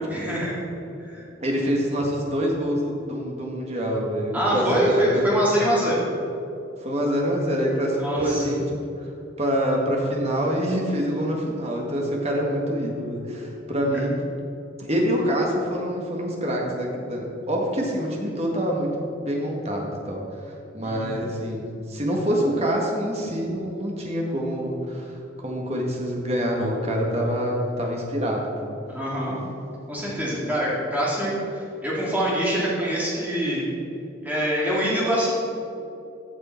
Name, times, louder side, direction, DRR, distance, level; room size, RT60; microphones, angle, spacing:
voice 1, 0.1-0.5 1.1-1.2 4.3-6.0 8.0-8.5 20.8-21.1 28.9-29.3 29.9-33.6 34.2-35.3, equal, 10° right, -7 dB, 2.5 m, -24 dB
voice 2, 1.4-5.3 6.8-8.6 9.0-9.1 9.4-14.2 14.8-20.2 20.5-25.2 25.4-28.7, equal, 30° right, -1 dB, 1.7 m, -26 dB
14.0 x 6.7 x 4.5 m, 2.7 s
head